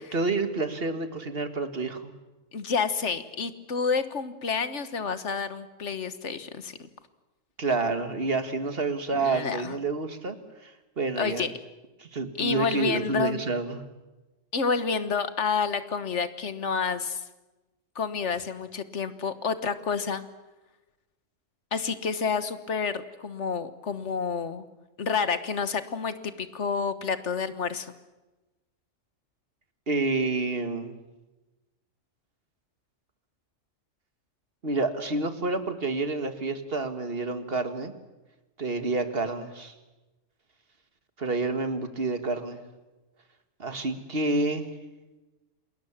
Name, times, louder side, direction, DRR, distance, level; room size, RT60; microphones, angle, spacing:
voice 1, 0.1-2.1 7.6-10.4 10.6-11.4 12.0-13.8 29.9-31.0 34.6-37.9 38.6-39.7 41.2-42.7 43.6-44.7, right 3 dB, 50° right, 9 dB, 2.0 m, -29 dB
voice 2, 2.5-6.9 9.1-9.8 11.2-11.5 12.4-13.4 14.5-17.3 17.9-20.2 21.7-24.6 25.0-27.9, left 5 dB, 65° left, 12 dB, 1.6 m, -29 dB
28.5 x 20.5 x 7.3 m, 1.1 s
omnidirectional pair, 1.3 m